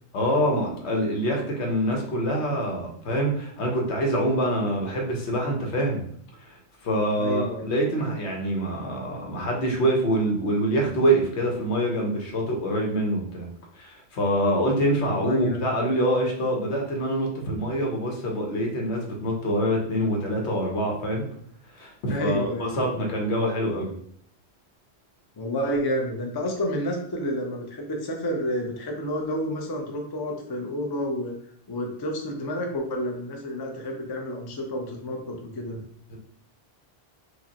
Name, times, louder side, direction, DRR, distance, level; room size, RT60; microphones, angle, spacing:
voice 1, 0.1-6.0 6.8-13.5 13.8-21.2 21.7-23.9 36.1-36.2, right 1 dB, 80° left, 0 dB, 1.1 m, -25 dB
voice 2, 7.2-7.7 15.0-15.7 22.1-23.0 25.4-31.3 31.7-35.8, equal, 30° left, 1 dB, 0.5 m, -30 dB
4.9 x 2.1 x 2.8 m, 0.62 s
omnidirectional pair, 1.1 m